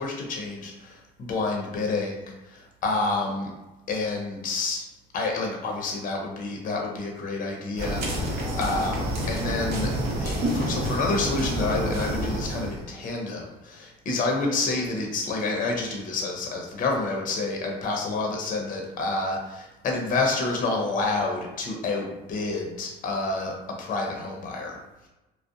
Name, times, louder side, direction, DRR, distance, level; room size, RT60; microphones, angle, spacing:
voice 1, 0.0-3.5 3.9-4.8 5.1-9.9 10.2-24.8, left 3 dB, 55° left, 1 dB, 0.6 m, -29 dB
sound 1, 7.8-12.8, right 1 dB, 70° right, 0.7 m, -28 dB
2.6 x 2.0 x 2.5 m, 1.0 s
supercardioid pair, 80°, 17 cm